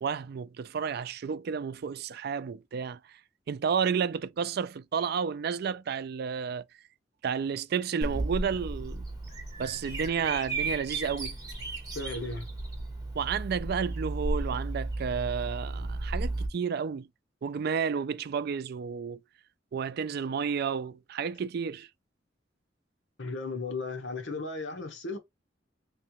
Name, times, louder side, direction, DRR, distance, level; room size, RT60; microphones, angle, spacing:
voice 1, 0.0-3.0 3.5-6.6 7.2-9.1 9.6-11.4 13.1-17.1 17.4-19.2 19.7-21.9, right 6 dB, 60° right, 0.4 m, -31 dB
Bird vocalization bird call bird song, 8.0-16.5, right 2 dB, 20° right, 1.4 m, -34 dB
voice 2, 11.9-12.5 23.2-25.2, left 3 dB, 85° left, 1.1 m, -35 dB
3.6 x 3.2 x 3.0 m
head